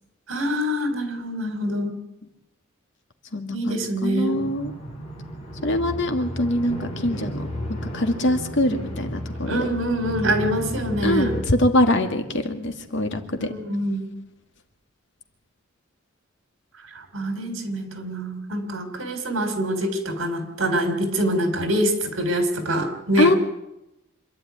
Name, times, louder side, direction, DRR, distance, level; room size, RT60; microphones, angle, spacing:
voice 1, 0.3-2.0 3.5-4.4 9.5-11.4 13.4-14.1 16.9-23.4, equal, 75° right, 7 dB, 3.9 m, -25 dB
voice 2, 3.3-4.7 5.6-9.6 11.0-13.5 23.2-23.4, left 1 dB, 60° left, 5 dB, 2.2 m, -23 dB
sound 1, 4.3-11.4, equal, 35° left, 7.8 m, -33 dB
26.0 x 11.5 x 9.6 m, 0.89 s
head